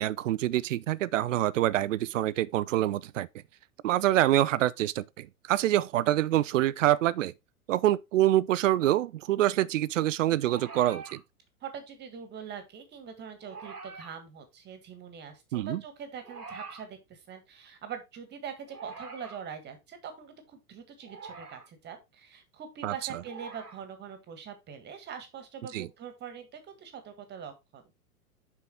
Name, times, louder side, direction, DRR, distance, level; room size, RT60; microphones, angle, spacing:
voice 1, 0.0-3.3 3.8-7.3 7.7-11.2 15.5-15.8 22.8-22.9 25.7-25.9, right 14 dB, 55° right, 0.5 m, -26 dB
sound 1, 10.4-11.2 13.4-14.1 16.2-16.9 18.7-19.4 21.0-21.7 23.2-23.8 25.4-25.5, right 4 dB, 80° right, 1.4 m, -44 dB
voice 2, 11.6-27.8, right 7 dB, 20° right, 1.7 m, -43 dB
7.1 x 5.7 x 3.3 m
figure-of-eight pair, 100°, 46 cm